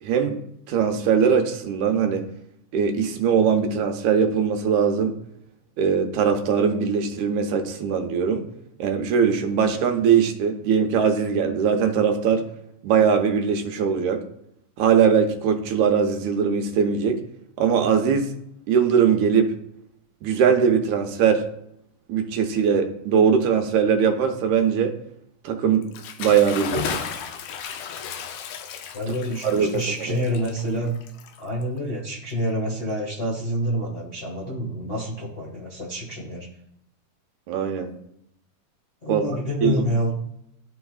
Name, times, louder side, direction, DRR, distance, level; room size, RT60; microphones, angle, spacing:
voice 1, 0.0-0.4 0.7-2.2 2.7-5.1 5.8-8.4 8.8-12.4 12.8-14.2 14.8-17.2 17.6-18.3 18.7-19.5 20.2-21.4 22.1-24.9 25.4-25.8 26.2-27.1 29.4-30.2 37.5-37.9 39.1-39.2 39.6-39.9, right 7 dB, 80° right, 5 dB, 2.1 m, -21 dB
Bathtub (filling or washing) / Splash splatter, 25.8-31.8, left 7 dB, 90° left, 2.2 m, -34 dB
voice 2, 28.9-30.9 31.4-36.5 39.0-40.1, equal, 35° left, -6 dB, 1.1 m, -27 dB
12.5 x 4.5 x 2.4 m, 0.74 s
omnidirectional pair, 3.5 m